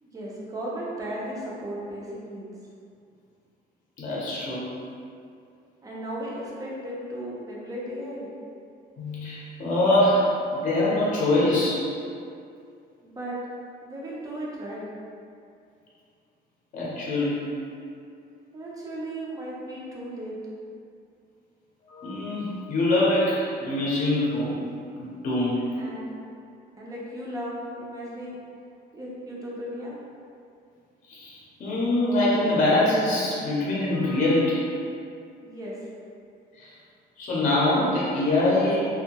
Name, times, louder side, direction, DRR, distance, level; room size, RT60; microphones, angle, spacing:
voice 1, 0.0-2.5 5.8-8.3 13.0-13.4 13.8-15.0 18.5-20.4 25.8-26.2 26.8-28.4 28.9-29.9 35.4-35.8, right 1 dB, 20° right, -5 dB, 0.4 m, -35 dB
voice 2, 4.0-4.7 9.0-11.8 16.7-17.5 21.9-24.6 25.0-25.6 31.1-34.6 36.5-36.7 37.2-38.9, left 1 dB, 45° left, -7 dB, 0.6 m, -24 dB
2.6 x 2.2 x 2.8 m, 2.4 s
cardioid pair, 175°, 18 cm